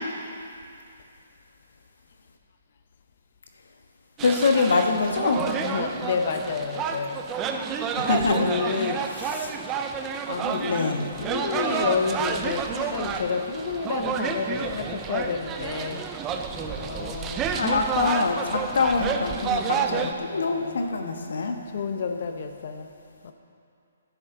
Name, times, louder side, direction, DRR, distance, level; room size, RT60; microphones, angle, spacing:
voice 1, 4.2-5.4 8.0-8.9 9.4-9.5 10.4-11.0 17.5-21.6, left 4 dB, 75° left, 3 dB, 1.3 m, -25 dB
sound 1, 4.2-20.1, right 6 dB, 15° right, 0.4 m, -30 dB
voice 2, 5.3-7.2 8.3-9.1 10.3-16.1 16.5-17.6 19.6-20.8 21.4-22.9 23.2-23.3, left 5 dB, 40° left, 7 dB, 0.9 m, -30 dB
16.5 x 10.5 x 3.9 m, 2.5 s
hypercardioid pair, 175°, 0 cm